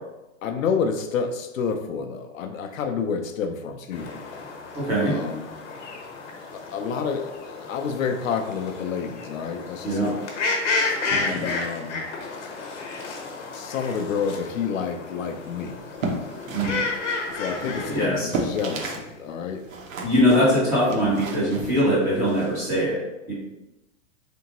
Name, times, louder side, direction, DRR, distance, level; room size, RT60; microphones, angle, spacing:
voice 1, 0.4-4.2 5.0-5.5 6.5-10.3 11.2-12.0 13.5-15.8 17.3-19.7, left 6 dB, 80° left, 6 dB, 0.7 m, -29 dB
sound 1, 3.9-18.1, left 3 dB, 60° left, 1.1 m, -32 dB
voice 2, 4.7-5.1 9.8-10.1 11.1-11.4 16.5-16.8 17.6-18.3 20.0-23.0 23.3-23.4, equal, 10° right, -9 dB, 0.4 m, -22 dB
sound 2, 15.8-19.1 19.4-22.5, right 3 dB, 75° right, 1.0 m, -33 dB
3.8 x 3.5 x 2.9 m, 0.99 s
hypercardioid pair, 165°, 39 cm